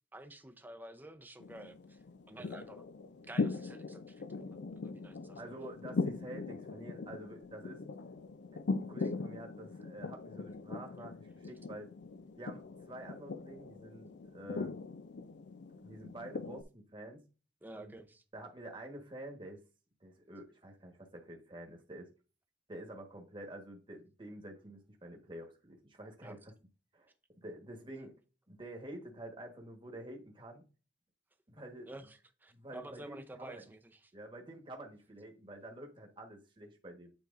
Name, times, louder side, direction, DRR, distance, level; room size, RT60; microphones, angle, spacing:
voice 1, 0.1-2.8 3.3-5.6 17.6-18.2 26.2-26.4 31.8-34.1, right 2 dB, 10° right, 0.6 m, -51 dB
sound 1, 1.4-16.6, left 3 dB, 70° left, 0.4 m, -40 dB
voice 2, 5.4-7.8 8.5-11.9 12.4-14.7 15.8-17.3 17.7-17.9 18.3-19.6 20.0-22.1 22.7-26.5 26.9-27.1 27.4-28.1 28.5-30.7 31.5-32.0 32.5-33.6 34.1-37.1, right 1 dB, 30° right, 1.3 m, -48 dB
9.2 x 4.5 x 2.5 m
head